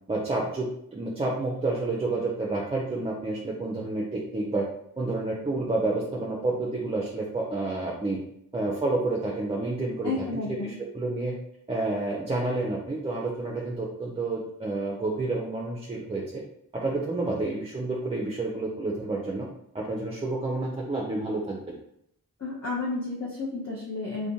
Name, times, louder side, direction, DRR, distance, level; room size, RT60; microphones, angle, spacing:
voice 1, 0.1-4.7 5.0-8.2 8.5-11.3 11.7-16.4 16.7-19.5 19.7-21.8, right 2 dB, 15° right, -2 dB, 0.4 m, -29 dB
voice 2, 10.0-10.8 22.4-24.3, left 3 dB, 45° left, -7 dB, 0.8 m, -32 dB
2.5 x 2.1 x 2.7 m, 0.74 s
cardioid pair, 45°, 36 cm